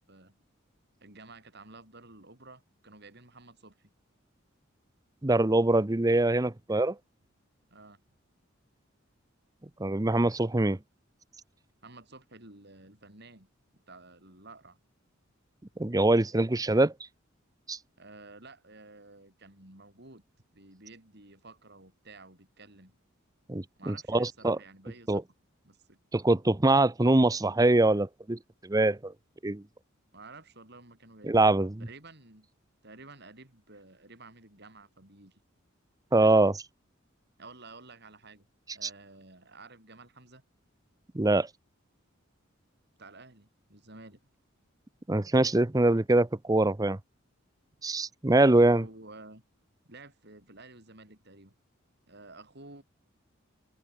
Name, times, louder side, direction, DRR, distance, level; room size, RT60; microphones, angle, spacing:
voice 1, 1.0-3.9 7.7-8.0 11.8-13.5 13.9-14.8 18.0-20.2 20.5-22.9 23.8-25.2 25.6-26.0 30.1-31.5 31.8-32.5 32.8-35.4 37.4-38.5 38.7-40.4 43.0-44.2 48.7-49.4 49.9-51.5 52.1-52.8, right 3 dB, 55° right, 6.5 m, -51 dB
voice 2, 5.2-6.9 9.8-10.8 15.8-16.9 17.7-17.8 23.5-24.6 25.1-25.2 26.1-29.1 29.4-29.6 31.2-31.8 36.1-36.6 38.8-38.9 41.1-41.5 45.1-47.0 47.8-48.8, right 2 dB, 20° right, 0.7 m, -24 dB
head